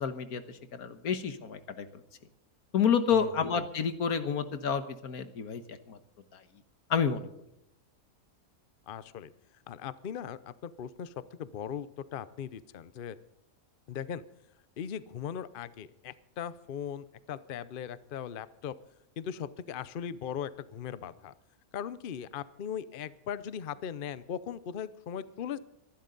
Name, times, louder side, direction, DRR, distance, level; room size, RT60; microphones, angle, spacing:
voice 1, 0.0-1.9 2.7-6.0 6.3-6.4 6.9-7.3, left 7 dB, 90° left, 10 dB, 1.7 m, -29 dB
voice 2, 3.1-3.5 8.9-9.3 9.7-13.2 13.9-14.2 14.8-18.8 19.2-21.3 21.7-25.6, left 8 dB, 50° left, 15 dB, 0.7 m, -39 dB
25.0 x 12.0 x 4.0 m, 0.80 s
omnidirectional pair, 1.5 m